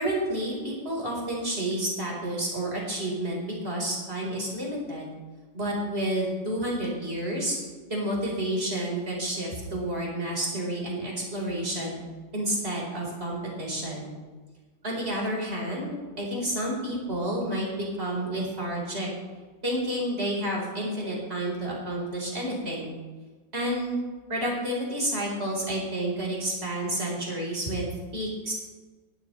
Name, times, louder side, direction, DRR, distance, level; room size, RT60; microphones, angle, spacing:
voice 1, 0.0-5.1 5.5-7.6 7.9-12.0 12.3-14.1 14.8-19.1 19.6-22.9 23.5-24.0 24.3-28.5, right 1 dB, 35° right, -3 dB, 4.5 m, -30 dB
17.5 x 12.0 x 3.2 m, 1.3 s
omnidirectional pair, 1.9 m